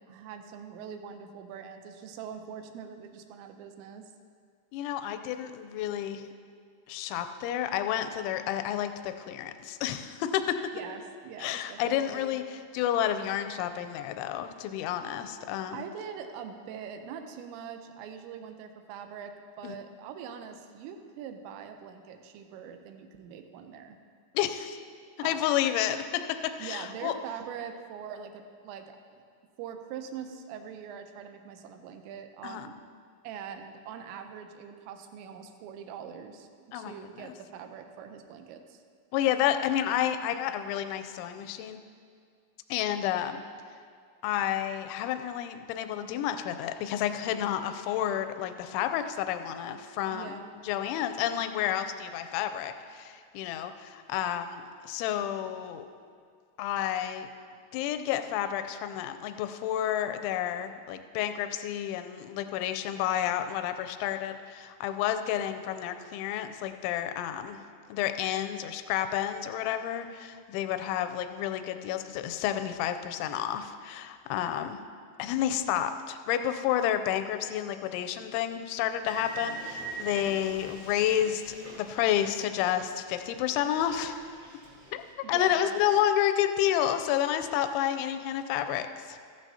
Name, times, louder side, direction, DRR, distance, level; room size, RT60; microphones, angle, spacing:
voice 1, 0.0-4.1 10.7-12.3 15.7-24.0 25.2-25.5 26.6-29.0 29.6-32.8 33.2-36.5 36.7-38.8 50.1-50.5 85.2-85.8, right 7 dB, 80° right, 6 dB, 2.8 m, -43 dB
voice 2, 4.7-6.3 6.9-10.6 11.4-15.8 19.6-19.8 24.3-24.8 25.2-27.1 32.4-32.7 36.7-36.9 39.1-41.8 42.7-43.4 44.2-55.9 56.6-57.3 57.7-67.6 67.9-74.8 75.2-84.3 84.9-85.0 85.3-89.2, left 11 dB, 85° left, 9 dB, 2.8 m, -30 dB
sound 1, 79.1-83.0 83.2-85.1, right 3 dB, 40° right, 1.3 m, -43 dB
15.0 x 12.0 x 2.8 m, 2.2 s
omnidirectional pair, 5.6 m